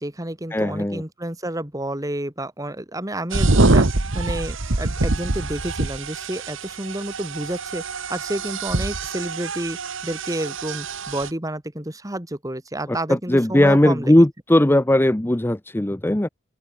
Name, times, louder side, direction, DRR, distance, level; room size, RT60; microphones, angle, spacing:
voice 1, 0.0-3.9 4.1-7.8 8.1-9.8 10.0-14.2, right 1 dB, 15° right, 1.9 m, -30 dB
voice 2, 0.5-1.0 12.9-16.3, left 1 dB, 10° left, 0.6 m, -18 dB
sound 1, 3.3-11.3, right 2 dB, 65° right, 1.5 m, -24 dB
head